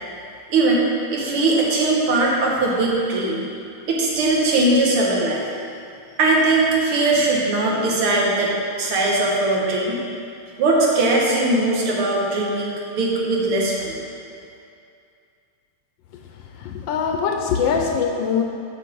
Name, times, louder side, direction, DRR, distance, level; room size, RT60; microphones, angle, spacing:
voice 1, 0.5-3.5 3.9-5.4 6.2-8.5 8.8-10.0 10.6-14.0, right 2 dB, 80° right, -3 dB, 2.2 m, -20 dB
voice 2, 16.1-18.4, left 6 dB, 75° left, 3 dB, 1.2 m, -23 dB
7.8 x 6.4 x 4.6 m, 2.4 s
omnidirectional pair, 2.4 m